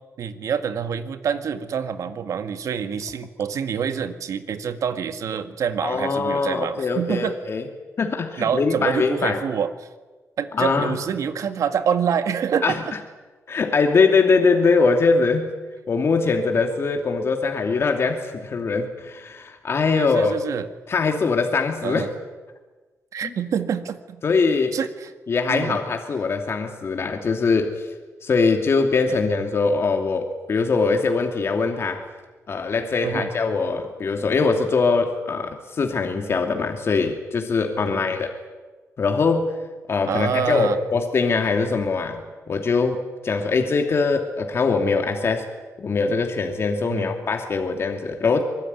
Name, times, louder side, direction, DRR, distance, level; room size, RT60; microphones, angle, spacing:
voice 1, 0.2-7.4 8.4-9.7 10.4-12.9 19.9-20.7 21.8-22.1 23.1-24.2 24.7-25.1 25.5-25.8 29.1-29.2 33.0-33.3 37.9-38.2 40.1-40.8 46.8-47.1, right 7 dB, 75° right, 9 dB, 1.8 m, -26 dB
voice 2, 5.8-7.7 8.0-9.4 10.6-11.0 12.6-12.8 13.5-15.5 15.9-20.3 20.9-22.1 23.2-23.3 24.2-24.8 25.3-27.9 28.2-32.0 32.5-38.3 39.0-39.6 39.9-45.5 45.8-48.4, left 4 dB, 50° left, 4 dB, 2.6 m, -22 dB
24.5 x 20.5 x 9.6 m, 1.3 s
cardioid pair, 115°, 6 cm